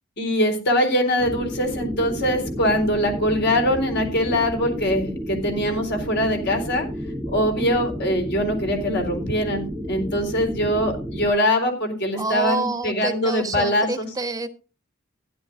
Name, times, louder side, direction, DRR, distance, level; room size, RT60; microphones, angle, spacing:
voice 1, 0.2-6.8 7.3-14.1, equal, 50° left, 4 dB, 3.9 m, -23 dB
sound 1, 1.2-11.3, equal, 5° left, 1.0 m, -31 dB
voice 2, 12.1-14.5, right 3 dB, 15° right, 8 dB, 1.2 m, -28 dB
15.5 x 11.5 x 2.6 m, 0.34 s
head